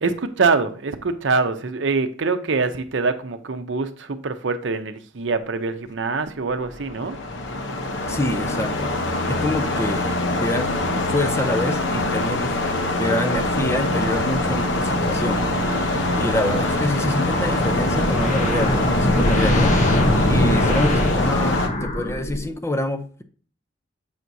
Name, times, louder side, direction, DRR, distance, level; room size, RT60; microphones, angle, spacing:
voice 1, 0.0-7.2, right 4 dB, 70° right, 0.6 m, -24 dB
sound 1, 6.6-21.7, left 2 dB, 70° left, 0.8 m, -24 dB
voice 2, 8.1-12.6 13.0-15.4 16.1-19.7 20.3-23.2, left 1 dB, 15° left, 0.5 m, -26 dB
sound 2, 13.3-20.6, right 1 dB, 40° right, 0.6 m, -31 dB
sound 3, 17.2-22.6, left 1 dB, 40° left, 0.8 m, -22 dB
7.1 x 6.0 x 2.7 m
head